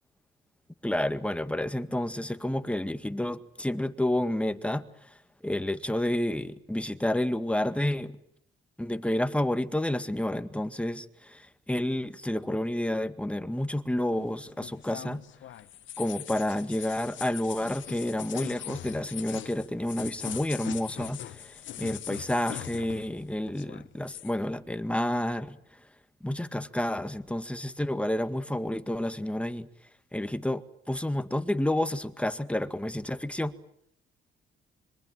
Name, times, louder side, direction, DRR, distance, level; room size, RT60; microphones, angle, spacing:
voice 1, 0.8-4.9 5.4-8.2 8.8-15.2 16.0-25.6 26.2-29.7 30.1-33.5, left 1 dB, 5° left, 2.0 m, -30 dB
sound 1, 14.1-23.2 23.5-24.3, left 12 dB, 70° left, 1.3 m, -41 dB
26.0 x 24.0 x 7.7 m
cardioid pair, 90°, 20 cm